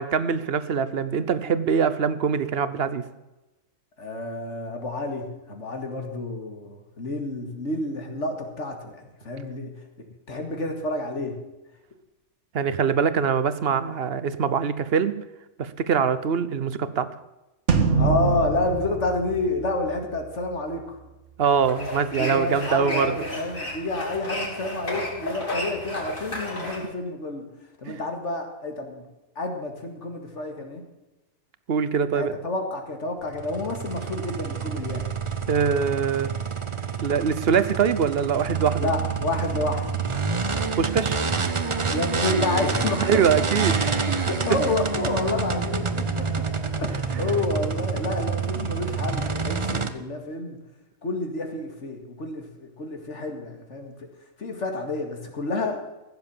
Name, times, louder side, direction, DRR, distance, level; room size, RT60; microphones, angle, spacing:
voice 1, 0.0-3.0 12.5-15.1 15.6-17.1 21.4-23.1 27.9-28.0 31.7-32.4 35.5-36.3 37.0-38.9 40.8-41.2 43.1-43.9 47.1-47.3, right 6 dB, 60° right, 13 dB, 1.1 m, -23 dB
voice 2, 4.0-9.7 10.3-11.3 18.0-21.0 22.2-27.5 27.8-29.0 29.4-30.8 32.1-35.1 38.8-39.9 41.9-43.2 43.9-46.4 46.8-50.6 51.0-53.9 54.4-55.8, left 2 dB, 80° left, 4 dB, 2.5 m, -29 dB
sound 1, 17.7-20.2, right 5 dB, 90° right, 1.7 m, -24 dB
sound 2, 21.4-26.8, left 1 dB, 45° left, 3.6 m, -33 dB
sound 3, 33.3-49.9, right 5 dB, 30° right, 0.8 m, -27 dB
15.5 x 7.5 x 7.3 m, 1.0 s
omnidirectional pair, 1.2 m